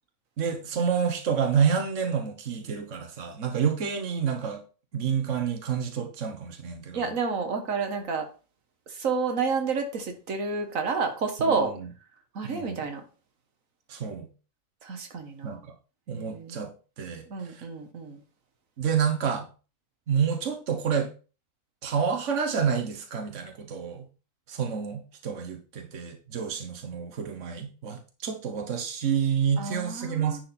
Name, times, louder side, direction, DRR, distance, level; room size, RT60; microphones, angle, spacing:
voice 1, 0.4-4.6 4.9-7.1 11.5-11.9 12.4-12.8 13.9-14.3 15.4-15.6 16.1-16.7 17.0-17.6 18.8-19.5 20.1-21.1 21.8-24.1 24.5-30.4, right 7 dB, 70° right, 1.5 m, -28 dB
voice 2, 6.9-8.3 8.9-11.7 12.3-13.0 14.8-15.6 16.1-16.6 17.3-18.2 29.6-30.4, right 5 dB, 85° right, 1.7 m, -30 dB
10.5 x 4.9 x 4.3 m
omnidirectional pair, 1.3 m